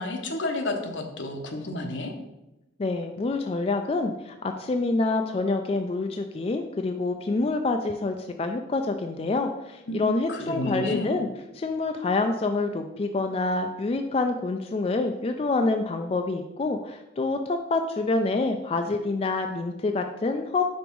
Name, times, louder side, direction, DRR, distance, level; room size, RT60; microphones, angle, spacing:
voice 1, 0.0-2.1 9.9-11.1, left 1 dB, 75° left, 4 dB, 0.9 m, -31 dB
voice 2, 2.8-11.3 11.5-20.6, left 3 dB, 30° left, 5 dB, 0.3 m, -27 dB
5.3 x 5.0 x 4.5 m, 0.96 s
head